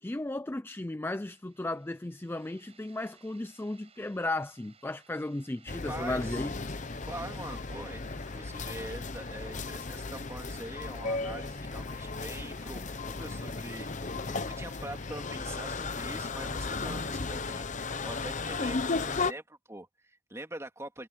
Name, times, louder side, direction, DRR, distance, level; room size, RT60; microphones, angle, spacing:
voice 1, 0.0-6.5, left 2 dB, 10° left, 0.4 m, -35 dB
sound 1, 1.3-18.6, right 6 dB, 30° right, 6.0 m, -60 dB
sound 2, 5.7-19.3, left 3 dB, 40° left, 0.8 m, -35 dB
voice 2, 5.9-6.4 7.1-21.1, right 1 dB, 15° right, 3.0 m, -44 dB
head